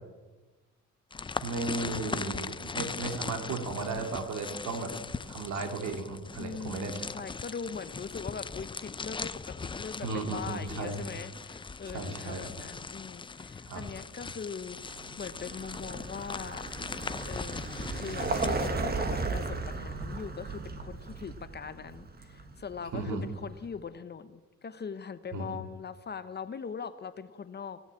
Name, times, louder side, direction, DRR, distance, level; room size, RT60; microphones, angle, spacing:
sound 1, 1.1-18.7, left 4 dB, 15° left, 0.4 m, -40 dB
voice 1, 1.4-4.9 5.3-6.9 10.0-11.0 11.9-12.5 13.7-13.8 22.9-23.2 25.3-25.6, right 3 dB, 70° right, 4 dB, 2.3 m, -35 dB
voice 2, 6.4-16.7 17.3-17.6 17.9-27.8, left 6 dB, 35° left, 12 dB, 0.9 m, -41 dB
Vehicle, 14.8-23.6, right 3 dB, 30° right, 1.3 m, -36 dB
16.5 x 7.1 x 8.4 m, 1.2 s
cardioid pair, 90°, 30 cm